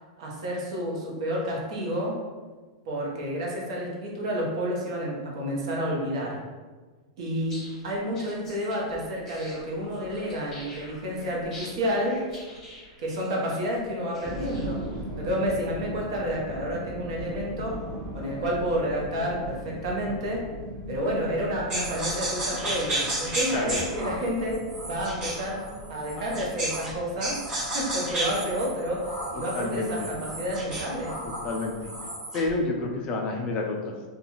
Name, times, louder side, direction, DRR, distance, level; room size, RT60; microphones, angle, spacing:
voice 1, 0.2-2.2 2.9-6.4 7.2-12.2 13.0-14.8 15.2-17.8 18.1-20.5 20.9-25.6 25.9-27.4 27.7-31.2, equal, 60° right, -2 dB, 0.8 m, -30 dB
sound 1, 7.4-15.0, left 1 dB, 10° left, 1.0 m, -46 dB
sound 2, 14.2-32.0, equal, 40° right, 1.3 m, -40 dB
sound 3, 21.7-26.9 27.2-32.5, right 1 dB, 15° right, 0.7 m, -33 dB
voice 2, 29.5-30.1 31.4-31.9 32.3-34.1, left 2 dB, 25° left, 0 dB, 0.3 m, -29 dB
2.4 x 2.2 x 3.0 m, 1.4 s
supercardioid pair, 165°, 4 cm